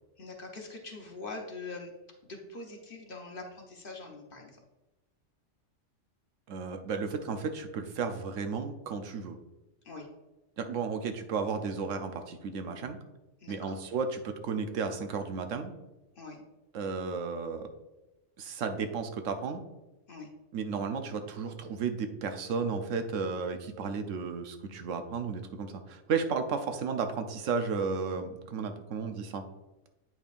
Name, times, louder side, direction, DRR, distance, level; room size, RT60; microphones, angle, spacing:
voice 1, 0.2-1.9 2.2-4.6 9.8-10.1 13.4-13.8 16.2-16.4 20.1-20.3, left 3 dB, 45° left, 1 dB, 1.0 m, -43 dB
voice 2, 6.5-9.4 10.6-13.0 13.5-15.7 16.7-17.7 18.4-19.6 20.5-29.4, right 5 dB, 75° right, 7 dB, 1.0 m, -33 dB
8.6 x 5.2 x 2.5 m, 1.0 s
omnidirectional pair, 1.3 m